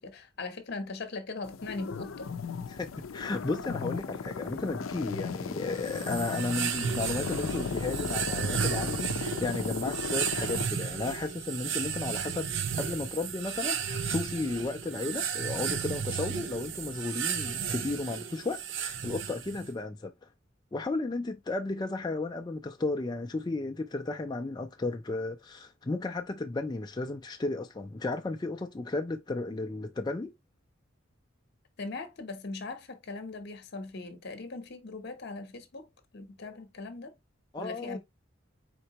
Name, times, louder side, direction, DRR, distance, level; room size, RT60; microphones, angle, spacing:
voice 1, 0.0-2.3 31.8-37.2 37.6-38.0, left 3 dB, 55° left, 0.8 m, -40 dB
sound 1, 1.4-10.7, left 5 dB, 90° left, 0.5 m, -36 dB
voice 2, 2.7-20.1 20.7-30.3 37.5-38.0, left 3 dB, 20° left, 0.4 m, -34 dB
sound 2, 5.8-19.7, right 7 dB, 65° right, 0.6 m, -34 dB
4.4 x 3.8 x 2.8 m
head